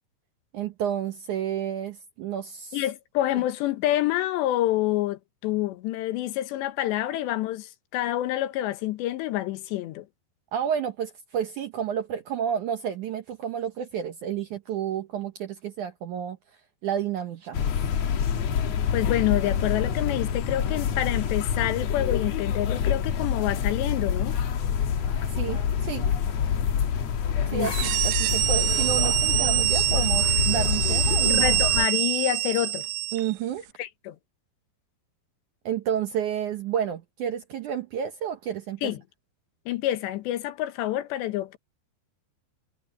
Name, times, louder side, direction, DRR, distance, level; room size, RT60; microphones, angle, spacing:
voice 1, 0.5-2.8 10.5-16.4 16.8-17.6 25.3-26.1 27.5-31.6 33.1-33.6 35.7-38.9, right 9 dB, 70° right, 1.9 m, -30 dB
voice 2, 2.7-10.1 18.9-24.4 27.5-27.7 31.3-32.8 33.8-34.2 38.8-39.0 39.7-41.6, left 14 dB, 90° left, 3.4 m, -27 dB
sound 1, 17.5-31.9, left 8 dB, 65° left, 1.7 m, -26 dB
sound 2, 27.6-33.3, right 18 dB, 85° right, 2.1 m, -25 dB
omnidirectional pair, 4.9 m